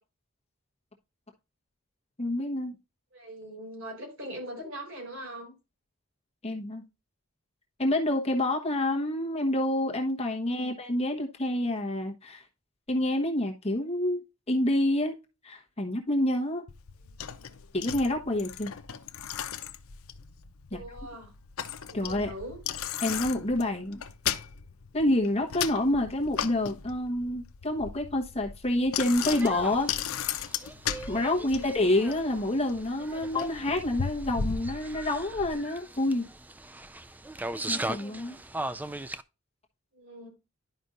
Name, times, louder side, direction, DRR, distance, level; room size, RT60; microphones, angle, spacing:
voice 1, 2.2-2.8 6.4-6.8 7.8-12.4 12.9-15.1 15.4-16.6 17.7-18.7 20.7-20.8 21.9-22.3 23.0-24.0 24.9-29.9 31.1-36.3 37.7-38.4, left 1 dB, 30° left, 1.1 m, -28 dB
voice 2, 3.1-5.5 10.5-10.7 17.0-17.6 20.7-21.3 21.9-22.6 31.4-31.7 39.9-40.3, right 1 dB, 70° right, 4.2 m, -42 dB
Bicycle, 16.7-35.5, left 8 dB, 85° left, 0.6 m, -37 dB
sound 1, 29.2-39.2, right 2 dB, 10° right, 0.3 m, -39 dB
11.0 x 5.2 x 2.5 m
head